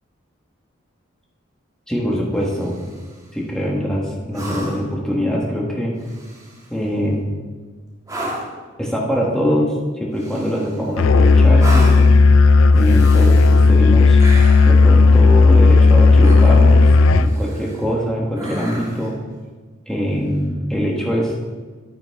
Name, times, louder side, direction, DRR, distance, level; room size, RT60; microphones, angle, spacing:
voice 1, 1.9-2.8 3.3-5.9 6.7-7.3 8.8-12.1 12.7-14.2 14.6-16.9 17.2-19.1 19.9-21.3, equal, 5° left, -3 dB, 1.4 m, -23 dB
sound 1, 2.4-3.1 4.3-5.0 6.0-6.7 8.1-8.6 10.2-10.9 11.6-12.2 12.7-13.7 14.2-14.8 16.2-16.8 17.2-17.9 18.4-19.1 21.0-21.1, right 1 dB, 15° right, 1.6 m, -32 dB
Musical instrument, 11.0-17.3, left 3 dB, 80° left, 0.4 m, -11 dB
11.0 x 9.3 x 3.5 m, 1.4 s
head